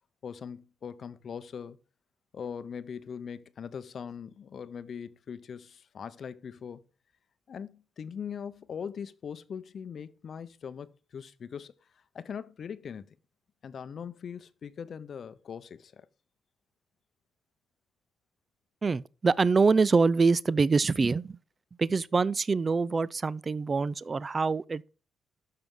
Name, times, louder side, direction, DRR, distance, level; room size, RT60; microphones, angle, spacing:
voice 1, 0.2-1.8 2.3-6.8 7.5-13.2 13.6-16.1, left 7 dB, 50° left, 0.7 m, -41 dB
voice 2, 18.8-21.4 21.8-24.9, right 4 dB, 30° right, 0.3 m, -25 dB
12.5 x 6.0 x 3.7 m
cardioid pair, 90°, 0 cm